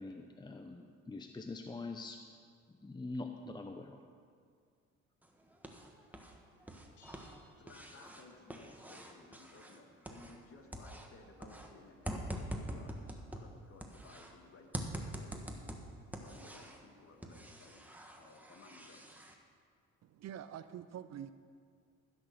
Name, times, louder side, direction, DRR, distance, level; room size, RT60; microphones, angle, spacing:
voice 1, 0.0-2.2 2.7-4.0, left 3 dB, 15° left, 5 dB, 0.7 m, -44 dB
sound 1, 5.2-6.3 6.6-10.5 10.7-14.3 14.7-16.8 17.2-19.3, right 1 dB, 5° right, 1.3 m, -45 dB
sound 2, 7.0-8.5, left 2 dB, 80° left, 2.3 m, -66 dB
voice 2, 7.6-15.6 16.2-17.8 18.2-19.0, left 3 dB, 45° left, 3 dB, 1.8 m, -58 dB
voice 3, 20.0-21.3, right 10 dB, 60° right, 12 dB, 0.6 m, -46 dB
15.0 x 6.3 x 6.8 m, 2.1 s
cardioid pair, 90°, 30 cm